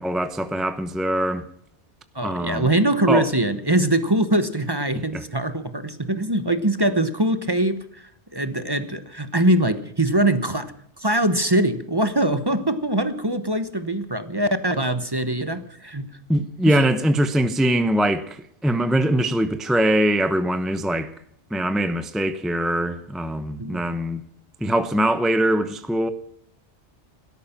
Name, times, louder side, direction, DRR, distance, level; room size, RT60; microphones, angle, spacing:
voice 1, 0.0-1.4 2.2-2.7 3.1-3.3 5.1-5.2 16.3-21.1 21.5-24.2 24.6-26.1, right 1 dB, ahead, 0.8 m, -22 dB
voice 2, 2.1-7.8 8.3-10.7 11.0-16.1 16.7-16.8 23.6-23.8, right 1 dB, 20° right, 1.1 m, -22 dB
17.0 x 13.0 x 5.9 m
omnidirectional pair, 1.2 m